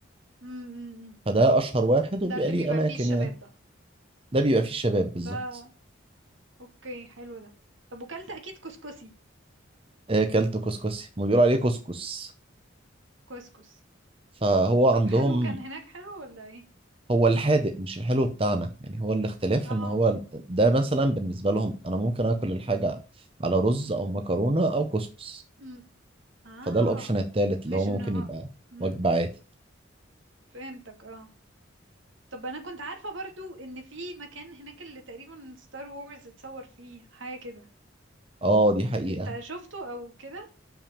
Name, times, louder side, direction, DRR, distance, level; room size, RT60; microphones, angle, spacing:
voice 1, 0.4-1.1 2.2-3.5 5.2-5.7 6.6-7.5 7.9-9.1 13.3-13.8 14.9-16.6 19.6-20.0 25.6-25.8 26.4-27.2 27.7-28.3 28.7-29.0 30.5-31.3 32.3-37.7 39.0-40.5, right 2 dB, 80° right, 4 dB, 2.6 m, -40 dB
voice 2, 1.3-3.3 4.3-5.4 10.1-12.3 14.4-15.6 17.1-20.2 20.5-23.0 23.4-25.4 26.7-28.5 28.8-29.3 38.4-39.3, right 2 dB, 30° right, 7 dB, 0.8 m, -24 dB
7.0 x 6.1 x 6.6 m, 0.34 s
head